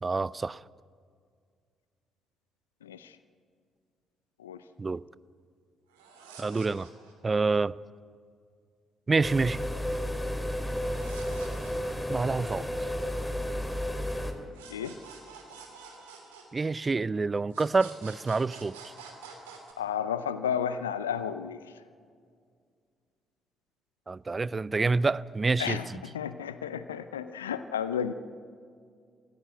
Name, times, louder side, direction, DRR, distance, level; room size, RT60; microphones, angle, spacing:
voice 1, 0.0-0.6 4.8-5.0 6.4-6.9 7.2-7.7 9.1-9.6 12.1-12.9 16.5-18.8 24.1-26.0, right 3 dB, 30° right, 0.5 m, -27 dB
voice 2, 2.8-3.2 4.4-4.6 14.7-15.0 19.8-21.6 25.6-28.1, left 8 dB, 85° left, 0.6 m, -32 dB
sound 1, 5.9-7.3 10.8-12.4 14.5-17.1 17.5-19.7, right 5 dB, 80° right, 2.8 m, -49 dB
sound 2, 9.2-14.3, equal, 10° left, 3.0 m, -32 dB
22.5 x 15.5 x 8.1 m
figure-of-eight pair, 45°, 0 cm